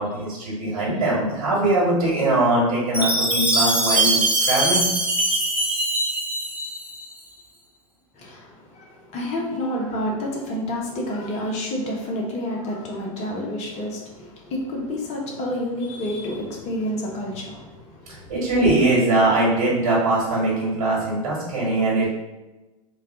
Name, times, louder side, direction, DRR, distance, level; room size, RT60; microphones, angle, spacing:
voice 1, 0.0-4.9 18.3-22.1, right 2 dB, 65° right, -5 dB, 1.5 m, -21 dB
Chime, 2.9-7.1, right 2 dB, 5° right, 0.7 m, -22 dB
voice 2, 8.2-18.3, left 1 dB, 35° left, -1 dB, 0.9 m, -29 dB
3.3 x 2.3 x 3.5 m, 1.1 s
figure-of-eight pair, 90°, 18 cm